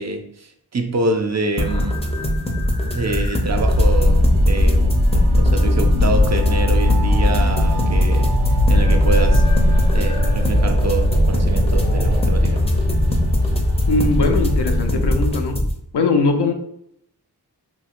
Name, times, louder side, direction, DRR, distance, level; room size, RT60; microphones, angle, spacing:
voice 1, 0.0-2.1 2.9-9.5 9.9-12.7, right 3 dB, 45° right, 5 dB, 0.4 m, -26 dB
sound 1, 1.6-15.7, left 1 dB, 15° left, 0.5 m, -23 dB
sound 2, 3.5-15.3, left 1 dB, 75° right, 0.7 m, -18 dB
voice 2, 13.9-15.6 15.9-16.5, left 3 dB, 80° left, 5 dB, 0.5 m, -20 dB
3.0 x 2.7 x 2.4 m, 0.73 s
wide cardioid pair, 65°, 40 cm